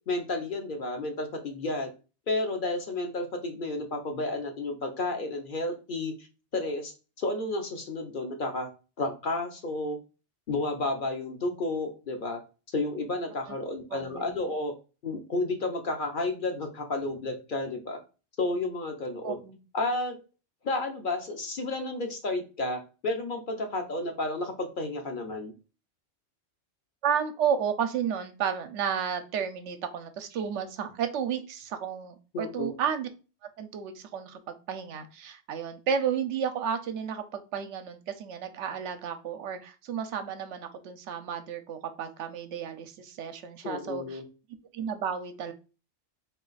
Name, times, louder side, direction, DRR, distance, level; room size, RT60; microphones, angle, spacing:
voice 1, 0.1-1.9 2.3-6.3 6.5-8.7 9.0-10.0 10.5-12.4 12.7-14.7 15.0-18.0 18.4-19.4 19.7-20.1 20.6-25.5 32.3-32.7 43.6-44.2, left 2 dB, 50° left, 4 dB, 0.8 m, -31 dB
voice 2, 13.5-14.4 19.2-19.6 27.0-33.1 33.6-44.2 44.7-45.5, right 7 dB, 80° right, 8 dB, 0.9 m, -32 dB
3.9 x 2.3 x 3.9 m, 0.33 s
omnidirectional pair, 1.2 m